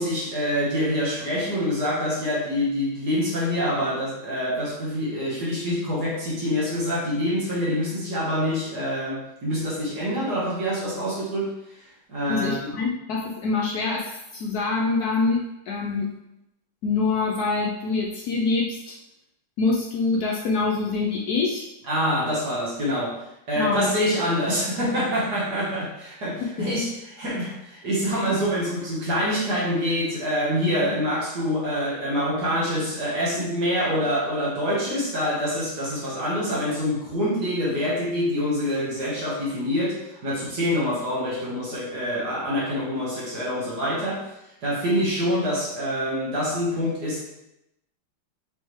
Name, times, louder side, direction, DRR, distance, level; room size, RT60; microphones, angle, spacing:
voice 1, 0.0-11.5 11.8-12.7 21.9-23.1 23.5-26.9 27.2-44.2 44.6-47.2, equal, 55° right, -6 dB, 1.6 m, -26 dB
voice 2, 12.3-16.1 16.8-19.0 19.6-21.7 23.6-23.9 26.4-26.7 30.8-31.0, left 3 dB, 80° left, -2 dB, 0.8 m, -25 dB
5.5 x 3.1 x 3.1 m, 0.87 s
omnidirectional pair, 2.2 m